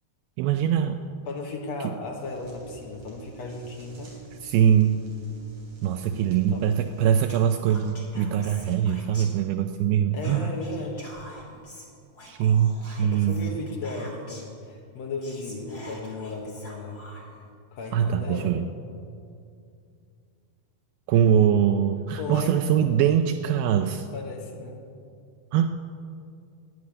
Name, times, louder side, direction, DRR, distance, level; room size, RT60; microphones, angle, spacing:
voice 1, 0.4-1.0 4.4-5.0 5.8-10.5 12.3-13.5 17.9-18.6 21.1-24.1 25.5-25.7, right 9 dB, 80° right, 7 dB, 2.3 m, -22 dB
voice 2, 1.3-4.2 6.1-6.6 10.1-11.0 12.9-17.0 17.7-18.5 22.2-22.6 24.1-24.9, left 3 dB, 60° left, 1 dB, 1.8 m, -35 dB
sound 1, 2.2-7.2, right 5 dB, 45° right, 4.2 m, -48 dB
Whispering, 7.3-9.8 10.1-14.6 14.9-15.0 15.2-17.5, left 1 dB, 20° left, 1.8 m, -47 dB
12.5 x 10.0 x 9.5 m, 2.4 s
omnidirectional pair, 4.6 m